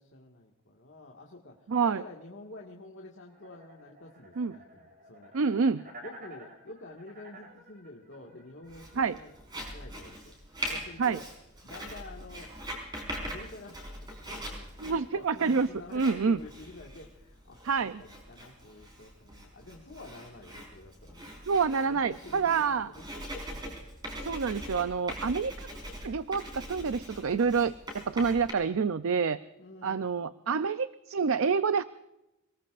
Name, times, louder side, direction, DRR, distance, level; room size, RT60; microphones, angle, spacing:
voice 1, 0.0-5.3 6.0-11.3 11.6-12.5 13.2-21.4 21.8-23.8 29.6-30.1, left 2 dB, 55° left, -1 dB, 1.8 m, -49 dB
voice 2, 1.7-2.0 4.4-4.5 5.3-5.8 9.0-9.2 11.0-11.2 14.8-16.4 17.6-18.0 21.5-22.9 24.2-25.7 26.0-29.4 29.8-31.8, right 5 dB, 65° right, 13 dB, 0.5 m, -27 dB
sound 1, 3.3-9.7, right 1 dB, 40° right, 5.0 m, -52 dB
Writing, 8.7-28.5, equal, 20° right, 4.8 m, -42 dB
27.0 x 19.5 x 2.5 m, 0.92 s
head